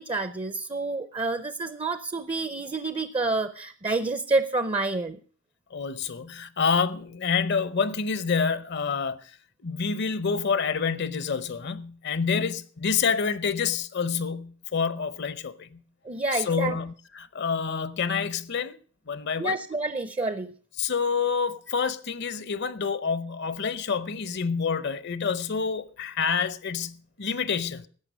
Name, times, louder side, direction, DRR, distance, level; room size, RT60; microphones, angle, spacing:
voice 1, 0.0-5.2 12.3-12.4 16.0-16.8 19.4-20.5, right 3 dB, 25° right, 0.6 m, -28 dB
voice 2, 5.7-9.3 9.6-15.8 16.3-18.8 19.1-19.6 20.8-27.9, left 5 dB, 60° left, 0.7 m, -28 dB
14.0 x 8.7 x 6.1 m
head